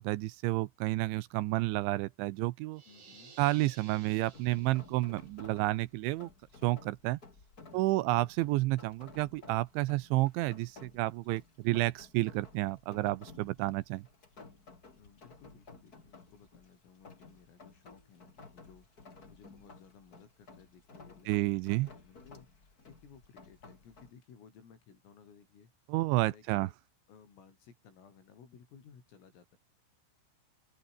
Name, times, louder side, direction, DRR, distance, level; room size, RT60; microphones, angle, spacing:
voice 1, 0.0-2.8 3.4-6.3 6.6-7.2 7.7-14.0 21.3-21.9 25.9-26.7, right 19 dB, 85° right, 2.9 m, -30 dB
sound 1, 2.7-5.3, right 5 dB, 70° right, 9.5 m, -56 dB
voice 2, 2.9-3.4 7.7-8.2 15.0-18.9 19.3-22.5 22.9-25.7 26.2-26.7 27.1-29.6, left 6 dB, 90° left, 8.3 m, -58 dB
Rain, 4.3-24.1, left 3 dB, 20° left, 3.0 m, -55 dB
open air
omnidirectional pair, 5.8 m